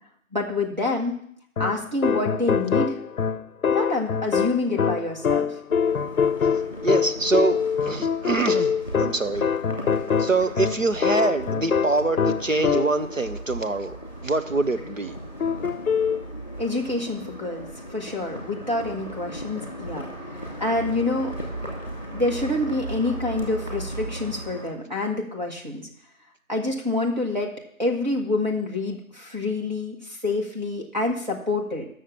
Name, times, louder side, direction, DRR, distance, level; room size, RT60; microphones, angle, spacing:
voice 1, 0.3-1.2 1.6-3.0 3.7-5.6 16.6-17.7 17.9-20.1 20.6-21.3 22.1-25.8 26.5-27.5 27.8-31.9, left 2 dB, 30° right, -2 dB, 1.6 m, -27 dB
sound 1, 1.6-13.2 15.4-16.2, left 6 dB, 85° left, 0.6 m, -24 dB
sound 2, 5.7-24.7, right 1 dB, 25° left, 2.2 m, -37 dB
voice 2, 6.8-9.4 10.2-14.0 14.2-15.1, right 3 dB, 65° right, 8 dB, 0.8 m, -24 dB
9.1 x 6.5 x 7.4 m, 0.67 s
figure-of-eight pair, 180°, 41 cm